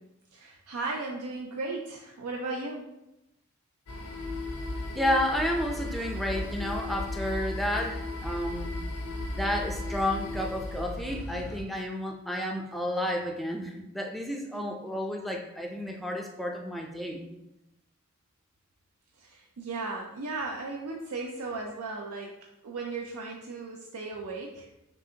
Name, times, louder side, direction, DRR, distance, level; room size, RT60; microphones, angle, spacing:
voice 1, 0.3-2.9 19.2-24.7, right 3 dB, 75° right, 0 dB, 0.5 m, -36 dB
sound 1, 3.9-11.6, left 2 dB, 85° left, 0.7 m, -35 dB
voice 2, 4.9-8.7 9.3-17.3, left 1 dB, ahead, 1 dB, 0.4 m, -31 dB
6.1 x 2.5 x 2.8 m, 0.90 s
head